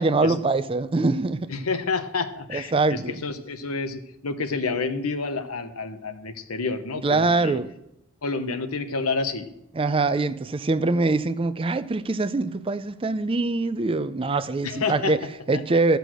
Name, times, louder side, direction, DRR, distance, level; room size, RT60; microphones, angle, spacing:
voice 1, 0.0-1.5 2.5-3.2 7.0-7.7 9.7-16.0, right 3 dB, 25° right, 0.4 m, -23 dB
voice 2, 1.5-7.6 8.2-9.5 14.6-15.2, left 4 dB, 90° left, 1.1 m, -29 dB
14.0 x 6.8 x 6.2 m
head